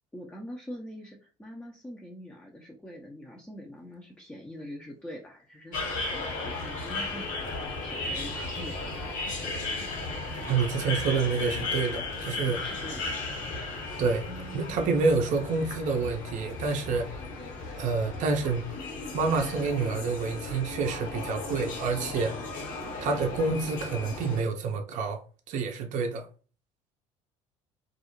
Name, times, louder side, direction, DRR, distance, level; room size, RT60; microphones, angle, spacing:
voice 1, 0.1-9.6 12.5-13.0 14.2-15.0, equal, 10° left, 0.5 m, -44 dB
sound 1, 5.7-24.4, left 3 dB, 55° left, 1.1 m, -35 dB
sound 2, 8.2-14.0, equal, 90° left, 0.6 m, -49 dB
voice 2, 10.5-12.6 14.0-14.2 14.5-17.1 17.8-18.6 19.1-22.3 23.0-25.2 25.5-26.3, right 4 dB, 50° right, 0.5 m, -28 dB
2.3 x 2.0 x 2.9 m
hypercardioid pair, 65°, 16 cm